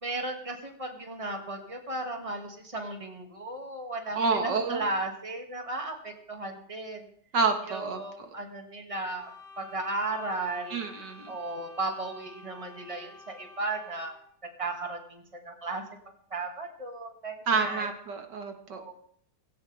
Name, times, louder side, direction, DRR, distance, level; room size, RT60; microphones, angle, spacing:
voice 1, 0.0-7.0 7.7-9.3 9.6-10.8 11.3-14.2 14.6-15.8 16.3-17.9 18.7-18.9, right 2 dB, 20° right, 3 dB, 2.5 m, -35 dB
voice 2, 4.1-4.9 7.3-8.0 10.7-11.3 17.5-18.8, right 4 dB, 85° right, 5 dB, 2.5 m, -28 dB
sound 1, 9.0-14.3, left 3 dB, 85° left, 7.4 m, -50 dB
17.0 x 17.0 x 3.6 m, 0.63 s
omnidirectional pair, 1.8 m